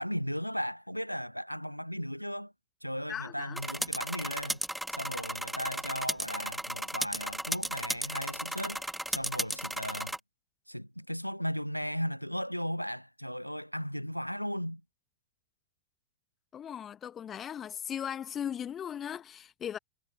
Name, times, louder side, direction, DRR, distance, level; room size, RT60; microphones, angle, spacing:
voice 1, 0.0-2.5 2.8-4.6 4.9-10.2 10.7-14.8, equal, 90° left, 0.7 m, -36 dB
voice 2, 3.1-3.6 16.5-19.8, left 9 dB, 25° left, 1.5 m, -38 dB
sound 1, 3.6-10.2, right 1 dB, ahead, 1.6 m, -35 dB
figure-of-eight pair, 90°, 0 cm